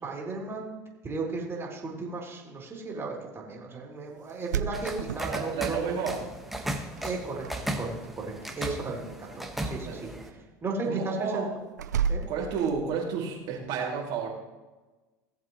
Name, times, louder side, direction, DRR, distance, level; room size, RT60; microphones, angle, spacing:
voice 1, 0.0-0.7 1.0-5.8 7.0-10.3 10.6-11.4 12.1-12.2, right 3 dB, 25° right, -2 dB, 3.2 m, -35 dB
sound 1, 4.3-5.8 7.0-7.5 7.8-8.3 11.8-13.2, right 7 dB, 85° right, 0.4 m, -32 dB
sound 2, 4.7-10.3, right 1 dB, ahead, 1.4 m, -36 dB
voice 2, 5.3-6.2 9.8-10.1 10.9-11.5 12.3-14.3, right 6 dB, 60° right, -4 dB, 2.6 m, -31 dB
17.5 x 7.3 x 3.1 m, 1.2 s
hypercardioid pair, 80°, 9 cm